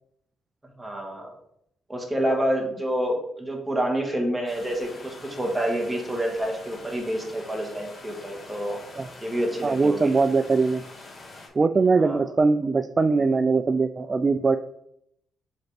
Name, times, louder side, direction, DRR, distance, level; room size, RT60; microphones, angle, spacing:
voice 1, 0.8-1.3 1.9-8.8 9.2-10.1 11.9-12.3, right 1 dB, 10° right, 1 dB, 1.8 m, -28 dB
sound 1, 4.5-11.5, left 2 dB, 35° left, 2.8 m, -45 dB
voice 2, 9.6-10.8 11.6-14.6, right 4 dB, 30° right, 10 dB, 0.3 m, -21 dB
7.7 x 4.0 x 3.5 m, 0.74 s
cardioid pair, 90°, 0 cm